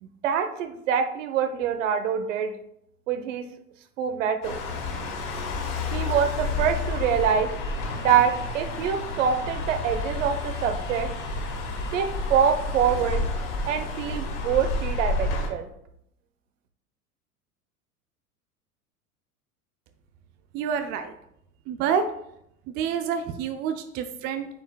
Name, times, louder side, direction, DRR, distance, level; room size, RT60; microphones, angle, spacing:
voice 1, 0.0-2.5 3.1-3.4 4.0-4.6 5.9-7.5 8.0-11.1 11.9-13.2 13.7-15.7, right 8 dB, 55° right, 8 dB, 1.0 m, -25 dB
sound 1, 4.4-15.5, left 2 dB, 55° left, 2.9 m, -30 dB
voice 2, 20.5-21.1 21.7-22.0 22.8-24.5, right 7 dB, 25° right, 7 dB, 0.4 m, -27 dB
9.4 x 7.1 x 2.3 m, 0.76 s
figure-of-eight pair, 85°, 45 cm